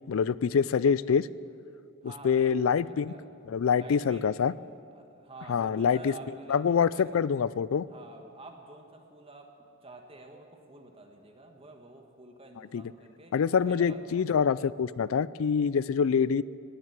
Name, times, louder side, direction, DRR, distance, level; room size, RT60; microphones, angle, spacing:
voice 1, 0.1-1.3 2.2-3.1 3.5-4.5 5.5-6.1 6.5-7.8 12.7-12.8 13.3-16.4, left 6 dB, 70° left, 19 dB, 0.4 m, -25 dB
voice 2, 2.0-3.3 3.8-4.3 4.9-7.1 7.9-9.5 9.8-14.2, right 2 dB, 25° right, 3 dB, 1.4 m, -49 dB
19.0 x 7.8 x 8.2 m, 2.6 s
head